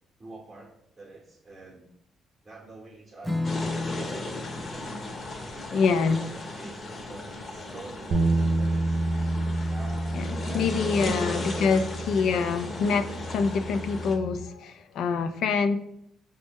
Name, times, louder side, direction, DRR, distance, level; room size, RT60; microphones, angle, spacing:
voice 1, 0.2-1.9 2.4-4.3 4.7-5.0 5.4-9.0 9.7-11.8, right 2 dB, 25° right, -2 dB, 0.7 m, -46 dB
Strum, 3.2-10.1, left 2 dB, 5° left, 0.4 m, -37 dB
sound 1, 3.4-14.1, left 2 dB, 40° left, 0.8 m, -36 dB
voice 2, 5.7-6.2 10.1-11.8 12.1-15.8, left 5 dB, 75° left, 8 dB, 0.3 m, -25 dB
sound 2, 8.1-14.4, right 2 dB, 60° right, 0.3 m, -29 dB
5.2 x 2.1 x 3.4 m, 0.76 s
cardioid pair, 90°, 0 cm